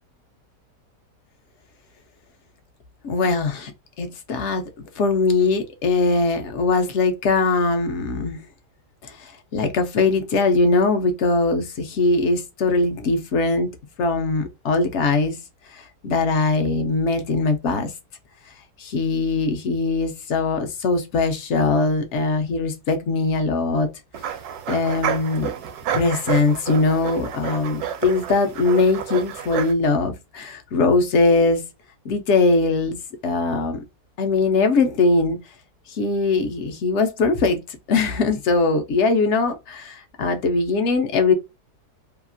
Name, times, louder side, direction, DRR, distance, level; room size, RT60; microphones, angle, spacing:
voice 1, 3.0-3.7 4.0-4.6 5.0-8.4 9.0-13.7 14.0-15.4 15.7-17.9 18.8-23.9 24.7-25.5 25.9-31.6 32.0-33.0 33.2-33.8 34.2-35.4 35.9-37.6 37.9-41.3, left 3 dB, 65° left, 0.7 m, -21 dB
sound 1, 24.1-29.7, right 9 dB, 80° right, 1.1 m, -30 dB
2.8 x 2.3 x 2.5 m
omnidirectional pair, 1.7 m